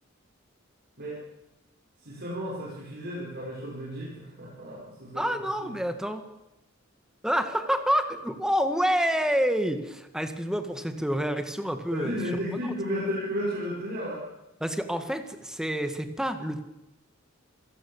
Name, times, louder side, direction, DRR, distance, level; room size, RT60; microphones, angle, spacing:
voice 1, 2.0-5.2 5.6-5.8 11.9-14.2, equal, 50° right, -6 dB, 5.8 m, -33 dB
voice 2, 5.2-6.2 7.2-12.2 12.6-12.7 14.6-16.6, equal, 5° right, 8 dB, 1.8 m, -28 dB
27.0 x 16.5 x 7.3 m, 0.94 s
head